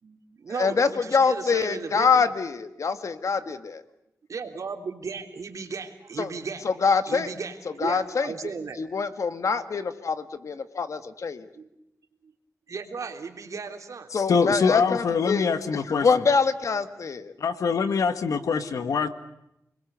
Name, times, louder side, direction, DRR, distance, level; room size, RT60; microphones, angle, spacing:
voice 1, 0.0-2.2 3.4-3.5 4.3-6.6 7.1-9.2 11.5-11.7 12.2-12.3 12.7-14.1, right 5 dB, 70° right, 4 dB, 3.4 m, -36 dB
voice 2, 0.6-3.8 6.2-6.3 6.6-7.3 7.8-8.3 8.8-11.5 14.1-15.5 15.7-17.3, left 5 dB, 65° left, 10 dB, 1.8 m, -25 dB
voice 3, 14.1-16.1 17.4-19.1, left 5 dB, 85° left, 10 dB, 1.8 m, -24 dB
29.0 x 21.5 x 8.2 m, 0.84 s
wide cardioid pair, 80°, 6 cm